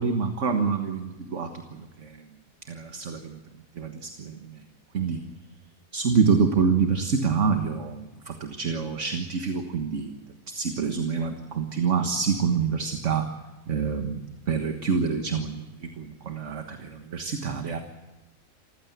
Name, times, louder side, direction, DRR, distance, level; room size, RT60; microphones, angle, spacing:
voice 1, 0.0-2.2 2.7-3.4 3.8-4.6 4.9-5.2 5.9-10.1 10.5-13.3 13.7-17.8, right 5 dB, 60° right, 6 dB, 1.8 m, -27 dB
27.5 x 15.5 x 8.0 m, 1.1 s
omnidirectional pair, 1.4 m